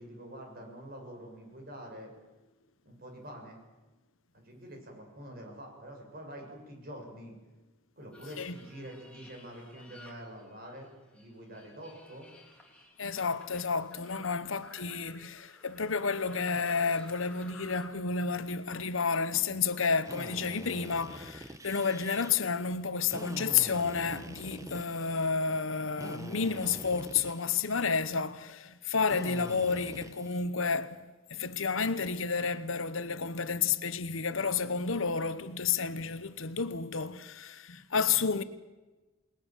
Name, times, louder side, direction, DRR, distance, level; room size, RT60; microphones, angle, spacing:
voice 1, 0.0-2.1 2.8-3.6 4.3-7.3 8.0-12.3, equal, 45° right, 6.5 m, -46 dB
sound 1, 8.1-10.9 11.1-17.9, left 2 dB, 5° left, 3.2 m, -54 dB
voice 2, 13.0-31.0 31.3-38.4, left 5 dB, 70° left, 1.1 m, -31 dB
Drill, 20.0-22.3 23.1-25.3 26.0-27.9 29.1-30.4, right 1 dB, 15° right, 1.0 m, -45 dB
29.0 x 20.0 x 7.4 m
head